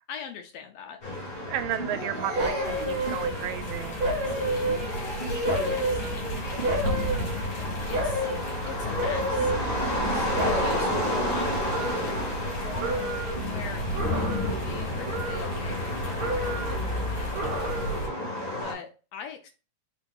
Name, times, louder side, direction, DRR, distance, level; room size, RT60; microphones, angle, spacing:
voice 1, 0.1-1.0 3.7-3.8 4.3-4.4 5.6-6.0 7.6-8.3 8.7-12.3 13.4-17.5 18.6-19.5, left 7 dB, 80° left, 1.6 m, -42 dB
sound 1, 1.0-18.7, left 1 dB, 40° left, 1.9 m, -32 dB
voice 2, 1.5-4.0 6.8-7.5 12.8-13.3, right 11 dB, 85° right, 1.9 m, -34 dB
sound 2, 2.4-3.6 4.0-5.1 5.4-7.6 7.9-8.5 9.0-10.1 10.4-12.5 12.8-13.5 13.9-14.7 15.0-15.9 16.2-16.9 17.3-18.1 18.5-18.6, right 1 dB, 65° right, 1.4 m, -31 dB
sound 3, 2.6-18.1, equal, 60° left, 2.1 m, -34 dB
4.5 x 2.7 x 3.7 m
omnidirectional pair, 3.3 m